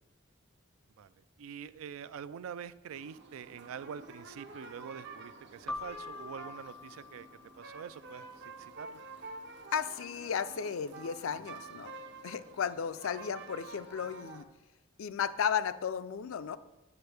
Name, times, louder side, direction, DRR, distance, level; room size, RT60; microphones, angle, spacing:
voice 1, 1.4-7.3 7.6-9.0, right 7 dB, 85° right, 15 dB, 0.4 m, -45 dB
sound 1, 2.9-14.4, right 3 dB, 55° right, 0.7 m, -49 dB
Keyboard (musical), 5.7-8.2, left 3 dB, ahead, 0.3 m, -44 dB
voice 2, 9.7-11.9 12.2-14.5 15.0-16.6, left 7 dB, 75° left, 13 dB, 0.4 m, -34 dB
8.5 x 8.0 x 3.4 m, 1.0 s
head